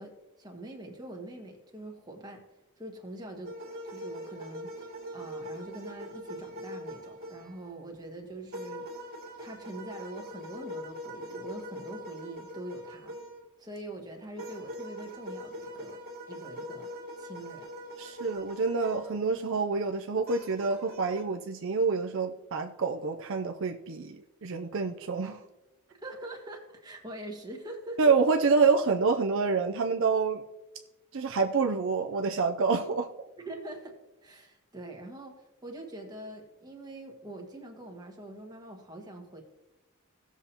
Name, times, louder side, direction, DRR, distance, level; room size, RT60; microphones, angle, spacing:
voice 1, 0.0-2.4 2.8-3.5 3.8-13.2 13.6-16.0 16.3-16.9 17.2-17.7 26.0-28.0 33.4-33.9 34.2-39.4, right 1 dB, 20° right, 1.6 m, -44 dB
sound 1, 3.4-7.7 8.5-13.5 14.4-19.2 20.2-21.2, equal, 45° right, 2.1 m, -42 dB
voice 2, 18.0-25.4 28.0-30.4 31.1-33.1, right 4 dB, 60° right, 0.5 m, -27 dB
17.0 x 7.0 x 2.9 m
head